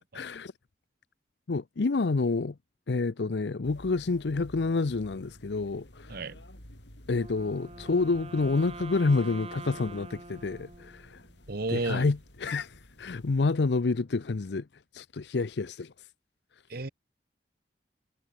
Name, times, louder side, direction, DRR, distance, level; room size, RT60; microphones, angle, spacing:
voice 1, 0.1-0.5 1.5-2.5 2.9-6.2 7.1-11.2 11.7-14.7 14.9-16.1, left 3 dB, 70° left, 0.6 m, -28 dB
sound 1, 3.6-13.4, equal, 90° left, 7.9 m, -52 dB
Wind instrument woodwind instrument, 7.1-11.3, right 2 dB, 35° right, 5.4 m, -45 dB
voice 2, 11.5-12.1 16.7-16.9, right 2 dB, 60° right, 1.3 m, -32 dB
head